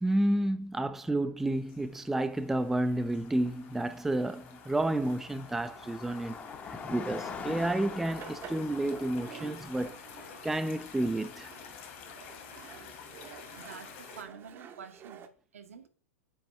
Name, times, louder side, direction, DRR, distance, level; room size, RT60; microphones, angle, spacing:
voice 1, 0.0-6.4 6.6-10.0 10.4-11.5, right 1 dB, 5° right, 0.3 m, -30 dB
sound 1, 1.4-14.2, left 7 dB, 50° left, 1.7 m, -51 dB
Car passing by, 2.1-2.2 2.4-13.4, left 5 dB, 20° left, 0.7 m, -46 dB
sound 2, 8.1-15.3, right 8 dB, 30° right, 0.7 m, -50 dB
voice 2, 13.6-15.3 15.5-15.9, right 6 dB, 70° right, 0.9 m, -48 dB
7.6 x 4.3 x 3.1 m
figure-of-eight pair, 100°, 8 cm